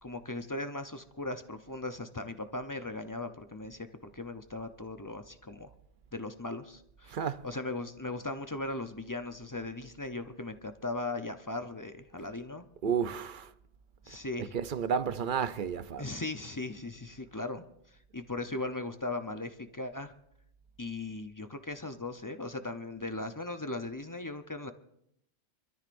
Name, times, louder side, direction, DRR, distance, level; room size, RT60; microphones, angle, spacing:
voice 1, 0.0-3.9 4.1-5.7 6.1-7.2 7.4-12.6 14.0-14.5 16.0-17.6 18.1-20.1 20.8-24.7, left 2 dB, 20° left, 0.5 m, -38 dB
voice 2, 7.1-7.4 12.8-13.5 14.4-16.1, right 7 dB, 50° right, 0.7 m, -32 dB
25.5 x 13.5 x 2.6 m
omnidirectional pair, 1.2 m